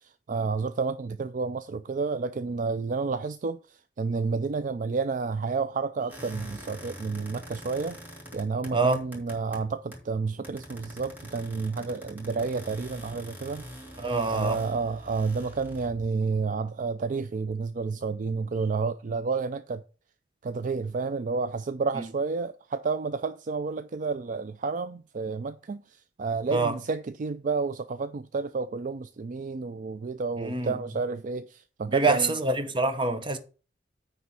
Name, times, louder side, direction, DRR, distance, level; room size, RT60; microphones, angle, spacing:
voice 1, 0.0-8.0 8.3-13.6 14.2-19.8 20.4-32.3, right 4 dB, 45° right, 0.4 m, -30 dB
sound 1, 6.1-10.1 10.4-16.1, equal, 10° right, 2.2 m, -44 dB
voice 2, 8.7-9.0 14.0-14.6 22.0-22.1 26.5-26.7 30.4-30.8 31.9-33.4, right 3 dB, 25° right, 0.8 m, -26 dB
9.5 x 3.5 x 6.1 m
head